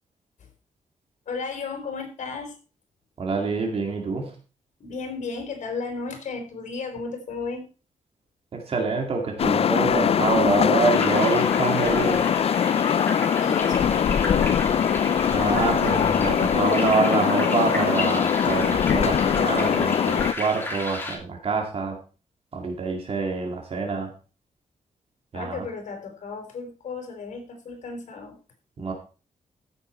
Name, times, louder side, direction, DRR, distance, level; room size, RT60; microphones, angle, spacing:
voice 1, 1.3-2.6 4.8-7.7 13.4-14.6 25.3-28.4, left 4 dB, 75° left, 4 dB, 4.1 m, -34 dB
voice 2, 3.2-4.3 8.5-12.2 15.3-22.0 22.5-24.1 25.3-25.6 28.8-28.9, right 4 dB, 50° right, 1 dB, 2.3 m, -26 dB
sound 1, 9.4-20.3, left 8 dB, 50° left, 0.5 m, -22 dB
sound 2, 10.9-21.2, left 2 dB, 15° left, 2.9 m, -33 dB
15.0 x 7.1 x 4.4 m, 0.35 s
wide cardioid pair, 145°, 13 cm